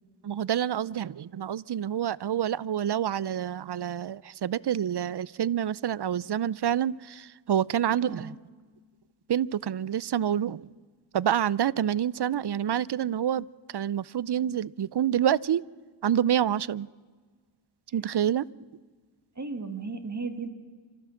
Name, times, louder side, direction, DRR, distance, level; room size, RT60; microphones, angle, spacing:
voice 1, 0.2-8.4 9.3-10.6 11.1-13.5 13.7-15.6 16.0-16.9 17.9-18.5, right 10 dB, 55° right, 22 dB, 0.5 m, -27 dB
voice 2, 7.9-8.4 19.4-20.5, right 4 dB, 35° right, 6 dB, 2.1 m, -35 dB
26.5 x 14.0 x 7.1 m, 1.5 s
wide cardioid pair, 65°, 49 cm